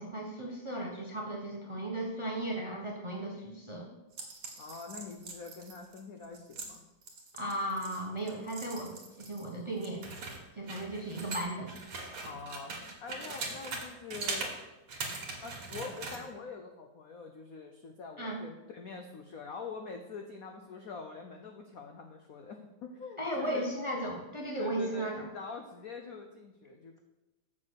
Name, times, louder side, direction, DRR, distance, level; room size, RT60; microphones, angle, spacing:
voice 1, 0.0-3.9 7.4-10.1 10.5-11.7 18.2-18.4 23.2-25.2, right 1 dB, 20° right, -1 dB, 0.8 m, -36 dB
sound 1, 4.1-9.5 9.8-13.8 14.1-14.5 14.9-16.2, right 3 dB, 85° right, 2.6 m, -41 dB
voice 2, 4.6-6.8 12.2-12.7 13.0-14.5 15.4-23.6 24.6-27.0, left 4 dB, 70° left, 4 dB, 0.8 m, -44 dB
7.4 x 6.7 x 6.4 m, 1.0 s
omnidirectional pair, 2.4 m